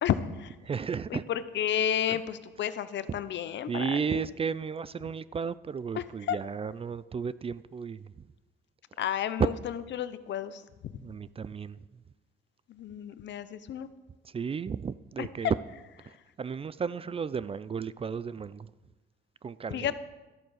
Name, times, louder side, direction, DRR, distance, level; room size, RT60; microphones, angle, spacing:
voice 1, 0.0-0.5 1.1-4.3 5.9-6.4 9.0-10.6 12.7-13.9 15.2-15.5 19.7-19.9, left 10 dB, 65° left, 14 dB, 0.8 m, -32 dB
voice 2, 0.6-1.2 2.1-2.2 3.7-8.1 11.0-11.8 14.2-15.5 16.1-18.7 19.4-19.9, right 6 dB, 30° right, 17 dB, 0.4 m, -34 dB
12.5 x 8.5 x 6.3 m, 1.2 s
cardioid pair, 90°, 20 cm